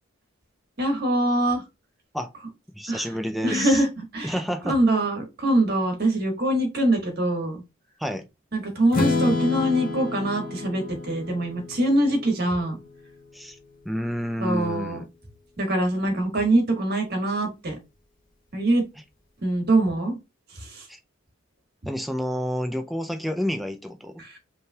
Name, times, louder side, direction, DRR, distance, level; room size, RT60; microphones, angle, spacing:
voice 1, 0.8-1.6 2.9-3.0 3.4-4.4 4.6-7.6 8.5-12.8 14.4-15.0 15.6-17.8 18.5-18.8 19.4-20.2 20.5-20.9 24.2-24.4, right 1 dB, 50° right, 1.5 m, -23 dB
voice 2, 2.7-3.8 4.2-4.8 8.0-8.3 13.3-13.6 13.8-15.0 20.9-21.0 21.9-24.1, equal, ahead, 0.4 m, -29 dB
Strum, 8.9-12.9, left 3 dB, 40° left, 1.9 m, -29 dB
5.4 x 3.2 x 2.3 m
head